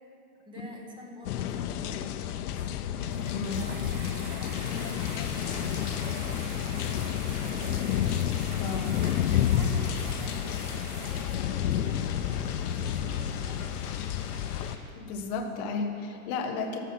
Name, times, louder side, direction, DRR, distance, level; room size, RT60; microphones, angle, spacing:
voice 1, 0.4-2.7 3.4-3.8 4.1-5.8 6.1-7.2 8.9-10.6 11.1-14.1, equal, 10° right, 1 dB, 1.0 m, -48 dB
sound 1, 1.2-14.8, left 10 dB, 90° left, 0.7 m, -30 dB
sound 2, 3.0-11.3, right 1 dB, 30° right, 1.8 m, -43 dB
voice 2, 3.3-3.6 8.6-8.9 15.0-16.8, left 4 dB, 20° left, 4 dB, 0.4 m, -33 dB
sound 3, 4.6-14.7, left 5 dB, 35° left, 1.5 m, -46 dB
12.5 x 7.2 x 5.8 m, 2.8 s
supercardioid pair, 160°, 44 cm